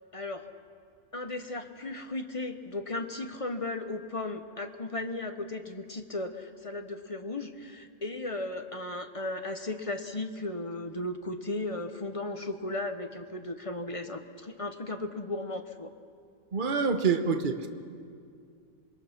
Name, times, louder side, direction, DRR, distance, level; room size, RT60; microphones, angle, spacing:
voice 1, 0.1-0.4 1.1-15.9, left 2 dB, 30° left, 6 dB, 0.7 m, -36 dB
voice 2, 16.5-17.7, right 5 dB, 35° right, 7 dB, 1.1 m, -26 dB
27.0 x 21.5 x 5.9 m, 2.3 s
omnidirectional pair, 1.7 m